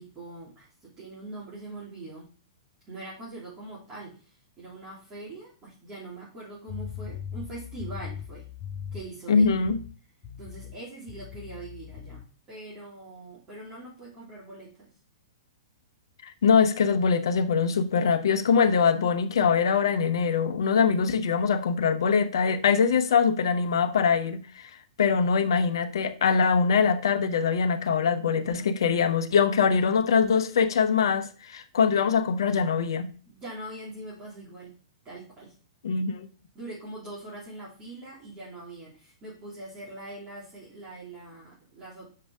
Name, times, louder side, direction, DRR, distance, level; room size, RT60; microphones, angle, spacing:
voice 1, 0.0-2.3 2.9-8.5 8.9-9.5 10.4-14.9 33.2-34.8 35.0-35.5 36.5-42.1, right 2 dB, 30° right, 3.3 m, -42 dB
sound 1, 6.7-9.1 9.4-9.9 10.2-10.8 11.1-12.2, left 8 dB, 30° left, 2.1 m, -39 dB
voice 2, 9.3-9.8 16.2-24.7 25.0-33.1 35.8-36.3, left 6 dB, 65° left, 0.9 m, -23 dB
7.7 x 5.2 x 3.5 m
figure-of-eight pair, 110°, 3 cm